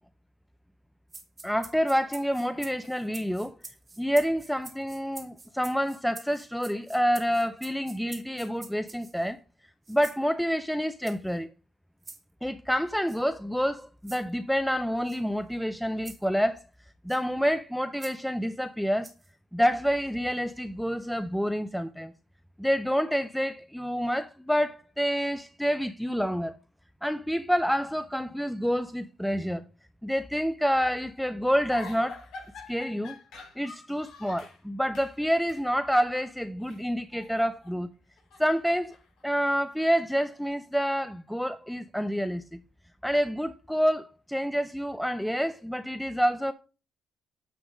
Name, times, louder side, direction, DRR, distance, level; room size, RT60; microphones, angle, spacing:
sound 1, 1.1-9.3 9.8-10.2 11.0-11.3 12.0-12.2 13.1-13.2 14.0-14.3 15.1-15.2 16.0-16.3 17.1-17.2 18.0-18.2 19.0-19.3, right 3 dB, 30° right, 1.7 m, -46 dB
voice 1, 1.4-3.5 4.0-9.4 9.9-11.5 12.4-16.6 17.0-19.1 19.5-22.1 22.6-26.6 27.0-29.6 30.0-32.2 32.7-33.2 33.6-37.9 38.4-39.0 39.2-42.4 43.0-46.5, equal, ahead, 0.4 m, -28 dB
sound 2, 31.7-34.6 34.9-35.2 35.5-35.7 36.6-37.8 38.1-40.5, left 4 dB, 75° left, 3.7 m, -47 dB
9.2 x 3.6 x 5.1 m
cardioid pair, 90°, 0 cm